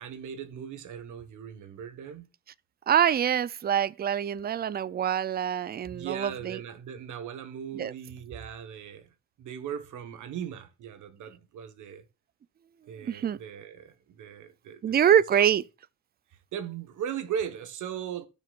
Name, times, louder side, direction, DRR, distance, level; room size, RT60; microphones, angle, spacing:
voice 1, 0.0-2.3 5.9-12.1 12.9-15.0 15.4-15.5 16.5-18.3, right 8 dB, 80° right, 1.4 m, -38 dB
voice 2, 2.9-6.6 7.8-7.9 13.0-13.4 14.8-15.6, right 9 dB, 30° right, 0.4 m, -25 dB
16.5 x 6.0 x 2.5 m
cardioid pair, 90°, 30 cm